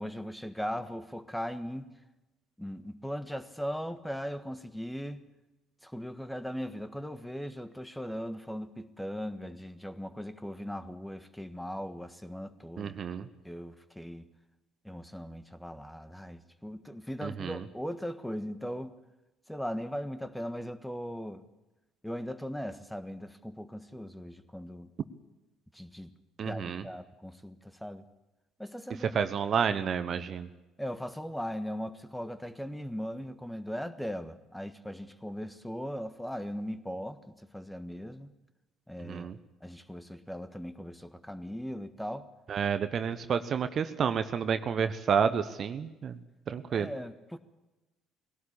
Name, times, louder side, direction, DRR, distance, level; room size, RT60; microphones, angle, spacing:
voice 1, 0.0-1.9 2.6-5.2 5.8-12.9 13.4-14.3 14.8-19.0 19.5-21.4 22.0-24.9 25.7-26.1 26.4-28.0 28.6-29.2 30.8-38.3 38.9-39.3 39.6-42.3 46.7-47.4, equal, 5° left, 11 dB, 1.5 m, -39 dB
voice 2, 12.8-13.3 17.2-17.6 26.4-26.8 29.1-30.5 39.1-39.4 42.5-46.2 46.5-46.9, right 7 dB, 45° right, 11 dB, 1.0 m, -30 dB
21.0 x 17.5 x 8.5 m, 1.0 s
figure-of-eight pair, 50°, 0 cm